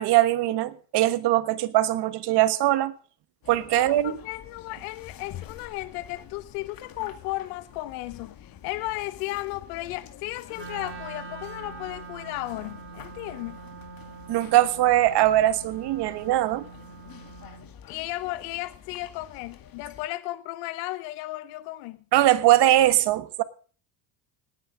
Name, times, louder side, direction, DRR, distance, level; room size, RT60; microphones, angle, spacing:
voice 1, 0.0-2.9 3.5-4.2 14.3-16.6 22.1-23.4, right 14 dB, 60° right, 1.5 m, -21 dB
sound 1, 3.4-20.1, left 9 dB, 45° left, 2.3 m, -48 dB
voice 2, 3.7-13.6 17.9-22.0, left 18 dB, 85° left, 1.0 m, -35 dB
Wind instrument woodwind instrument, 10.5-17.7, right 5 dB, 25° right, 3.3 m, -43 dB
18.5 x 9.3 x 5.0 m
supercardioid pair, 95°, 46 cm